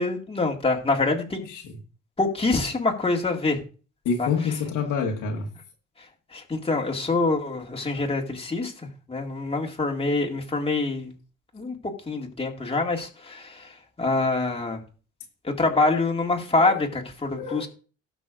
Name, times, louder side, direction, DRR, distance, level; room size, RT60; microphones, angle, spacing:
voice 1, 0.0-1.5 2.2-3.6 4.2-4.3 6.0-11.1 11.5-11.8 12.1-14.8 15.4-17.7, left 3 dB, 20° left, 2.1 m, -25 dB
voice 2, 4.1-5.5 15.7-16.0 16.6-16.7 17.4-17.7, left 5 dB, 85° left, 1.8 m, -27 dB
18.0 x 6.1 x 2.5 m
cardioid pair, 90°, 30 cm